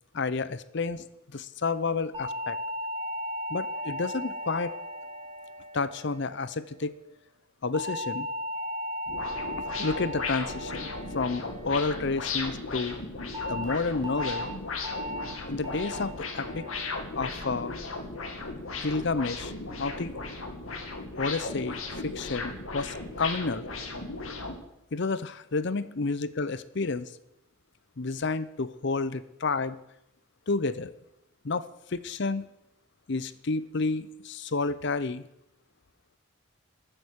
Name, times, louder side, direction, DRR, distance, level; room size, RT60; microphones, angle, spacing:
voice 1, 0.1-1.1 1.3-2.6 3.5-4.7 5.7-6.9 7.6-8.3 9.8-13.0 13.5-14.5 15.5-16.7 17.1-17.7 18.8-19.5 19.8-20.1 21.2-23.7 24.9-27.1 28.0-29.8 30.5-30.9 31.4-32.5 33.1-35.2, left 3 dB, 55° left, 15 dB, 0.7 m, -30 dB
sound 1, 2.1-6.6 7.7-12.2 13.3-13.6 14.0-14.4 14.8-15.2 15.6-16.0 16.4-16.8 17.2-17.6, left 1 dB, 20° right, 4.2 m, -36 dB
sound 2, 9.1-24.6, left 3 dB, 80° left, 2.1 m, -36 dB
14.0 x 9.0 x 6.4 m, 0.83 s
head